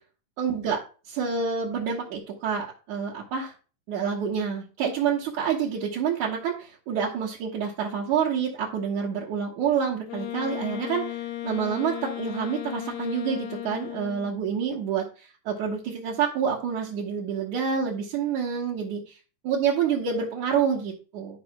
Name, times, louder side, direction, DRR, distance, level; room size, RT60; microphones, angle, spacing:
voice 1, 0.4-0.8 1.1-3.5 3.9-19.2 19.4-21.4, right 7 dB, 65° right, -3 dB, 2.7 m, -28 dB
Wind instrument woodwind instrument, 10.1-14.4, left 14 dB, 70° left, 1.6 m, -35 dB
11.0 x 4.0 x 5.9 m, 0.36 s
omnidirectional pair, 3.8 m